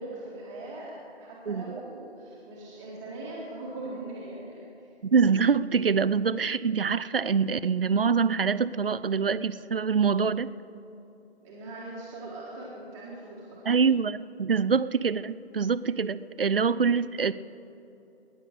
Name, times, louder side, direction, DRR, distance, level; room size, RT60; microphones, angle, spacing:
voice 1, 0.0-4.9 11.4-13.6, right 2 dB, 10° right, -7 dB, 1.7 m, -40 dB
voice 2, 1.5-1.8 5.0-10.5 13.7-17.3, right 5 dB, 55° right, 16 dB, 0.6 m, -25 dB
20.0 x 10.5 x 6.5 m, 3.0 s
figure-of-eight pair, 150°, 33 cm